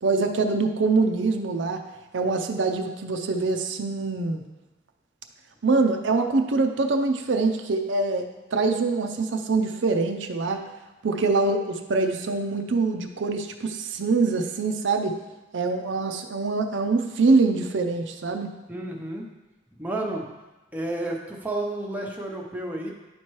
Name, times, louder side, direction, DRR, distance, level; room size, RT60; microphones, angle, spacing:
voice 1, 0.0-1.8 2.1-4.4 5.6-8.2 8.5-10.6 11.0-15.1 15.5-18.5, right 3 dB, 75° right, 5 dB, 0.5 m, -24 dB
voice 2, 18.7-19.3 19.8-20.3 20.7-22.9, right 1 dB, 10° right, -1 dB, 0.7 m, -31 dB
10.0 x 4.4 x 3.1 m, 1.1 s
head